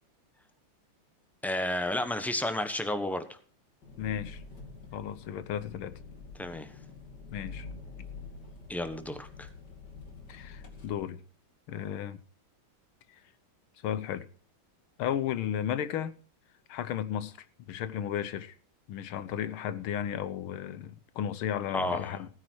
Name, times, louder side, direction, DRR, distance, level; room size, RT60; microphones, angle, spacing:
voice 1, 1.4-3.4 6.4-6.7 8.7-9.5 21.7-22.1, left 1 dB, ahead, 0.5 m, -32 dB
Engine, 3.8-10.9, left 4 dB, 50° left, 2.8 m, -46 dB
voice 2, 4.0-4.4 4.9-6.0 7.3-8.1 10.3-11.2 11.7-12.2 13.8-14.3 15.0-16.1 16.7-17.4 17.7-18.5 18.9-22.3, left 10 dB, 80° left, 1.7 m, -34 dB
16.5 x 9.7 x 4.6 m
omnidirectional pair, 2.3 m